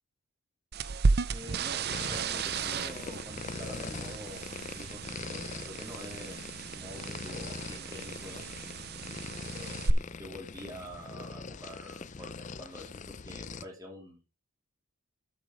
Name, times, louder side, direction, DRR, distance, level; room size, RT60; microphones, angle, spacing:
sound 1, 0.7-9.9, right 4 dB, 45° right, 0.5 m, -34 dB
voice 1, 1.3-6.4 6.7-8.4 9.6-14.2, equal, 15° right, -1 dB, 3.6 m, -47 dB
sound 2, 1.9-13.7, left 4 dB, 35° left, 0.5 m, -42 dB
12.5 x 7.1 x 3.4 m, 0.31 s
head